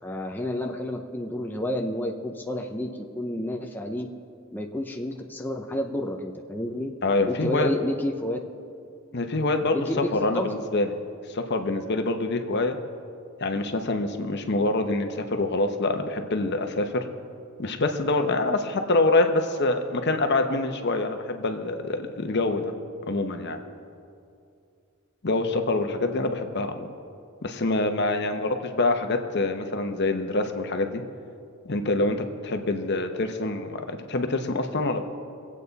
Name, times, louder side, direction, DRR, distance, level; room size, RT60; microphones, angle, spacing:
voice 1, 0.0-4.1 4.5-6.9 7.3-8.4 9.7-10.5, left 1 dB, 10° left, 2 dB, 0.6 m, -30 dB
voice 2, 7.0-7.7 9.1-9.8 10.1-10.9 11.3-12.8 13.4-17.0 17.6-22.7 23.1-23.6 25.2-26.9 27.4-31.0 31.6-35.0, left 2 dB, 55° left, 6 dB, 0.9 m, -25 dB
24.5 x 8.4 x 4.1 m, 2.5 s
head